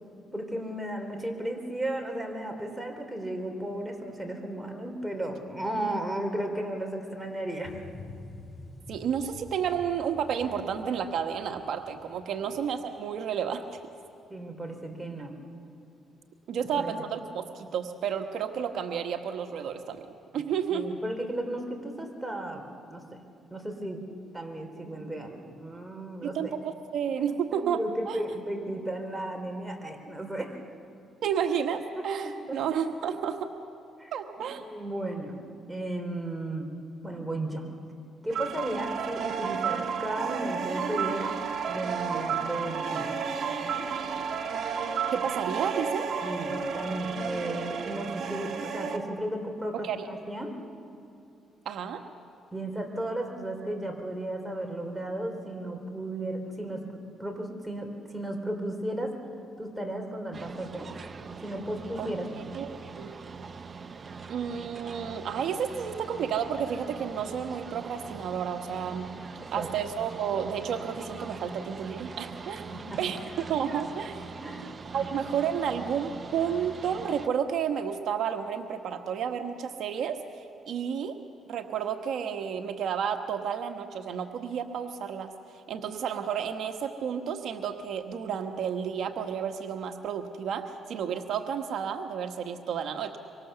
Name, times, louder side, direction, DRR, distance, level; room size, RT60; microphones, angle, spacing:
voice 1, 0.3-7.8 12.4-12.5 14.3-15.3 16.6-17.2 20.7-23.2 23.5-24.0 24.3-26.5 27.5-30.5 32.0-32.6 34.0-34.1 34.6-36.7 37.0-37.7 38.2-41.3 41.7-43.3 43.6-43.9 46.2-50.5 52.5-59.2 59.6-60.9 61.4-62.3 69.4-69.7 72.7-73.0 74.4-74.7 75.0-75.1, right 1 dB, 5° right, 3 dB, 3.7 m, -35 dB
sound 1, 7.6-13.2 13.7-13.8, left 3 dB, 45° left, 3.8 m, -48 dB
voice 2, 8.9-13.8 16.5-20.0 20.3-20.9 26.2-27.8 28.1-28.2 31.2-33.5 34.1-34.6 45.1-46.1 49.7-50.1 51.6-52.0 62.0-62.1 62.5-63.1 64.3-69.1 69.5-72.7 73.0-73.2 73.5-74.3 74.9-80.2 80.7-81.2 81.5-85.3 85.7-93.2, right 8 dB, 70° right, 5 dB, 1.3 m, -31 dB
sound 2, 38.3-49.0, right 6 dB, 55° right, 2.5 m, -32 dB
sound 3, 60.3-77.3, right 5 dB, 35° right, 0.9 m, -42 dB
24.5 x 24.5 x 6.9 m, 2.6 s
cardioid pair, 90°, 0 cm